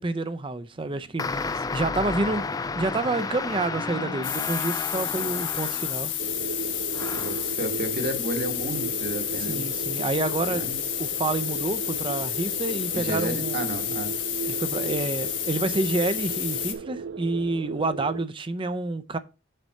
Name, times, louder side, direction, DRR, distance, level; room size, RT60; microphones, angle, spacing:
voice 1, 0.0-2.5 2.7-6.1 9.5-10.7 11.0-13.6 14.5-19.2, right 2 dB, 25° right, 0.6 m, -28 dB
voice 2, 0.8-1.9 7.1-9.6 10.5-10.8 12.9-14.1, right 1 dB, 55° right, 1.6 m, -33 dB
sound 1, 1.2-6.2 6.9-7.5, left 4 dB, 20° left, 0.3 m, -32 dB
sound 2, 4.2-16.7, left 11 dB, 80° left, 1.3 m, -30 dB
sound 3, 6.2-18.3, right 6 dB, 90° right, 0.4 m, -36 dB
6.6 x 4.1 x 6.4 m
head